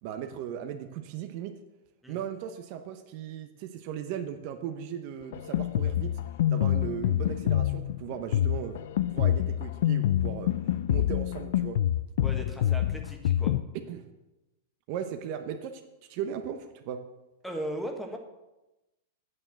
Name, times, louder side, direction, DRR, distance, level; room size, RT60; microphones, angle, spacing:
voice 1, 0.0-1.6 2.1-6.2 6.5-8.8 9.1-10.5 10.9-11.8 13.9-14.0 14.9-15.8 16.1-17.0, right 9 dB, 50° right, 7 dB, 0.8 m, -37 dB
Drum kit, 5.3-13.6, left 12 dB, 70° left, 0.4 m, -27 dB
voice 2, 12.2-13.5 17.4-18.2, right 1 dB, ahead, 3 dB, 1.4 m, -37 dB
8.6 x 6.9 x 6.4 m, 1.0 s
hypercardioid pair, 135°, 0 cm